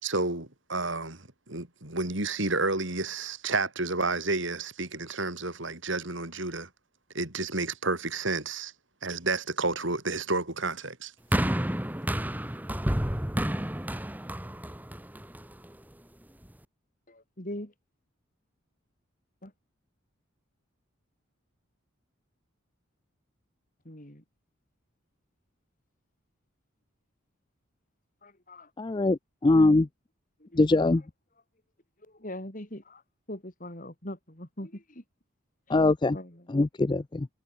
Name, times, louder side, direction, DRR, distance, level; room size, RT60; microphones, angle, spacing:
voice 1, 0.0-6.7 7.1-8.7 9.0-11.1, right 3 dB, 65° right, 4.9 m, -30 dB
sound 1, 11.3-15.7 16.5-16.6, equal, 10° right, 1.5 m, -30 dB
voice 2, 17.1-17.7 19.4-19.5 23.8-24.2 28.2-28.7 30.5-30.6 32.2-33.0 33.3-35.0 36.1-36.5, left 1 dB, 40° left, 4.5 m, -41 dB
voice 3, 28.8-29.9 30.6-31.0 35.7-36.2 36.5-37.3, left 2 dB, 20° left, 0.4 m, -22 dB
head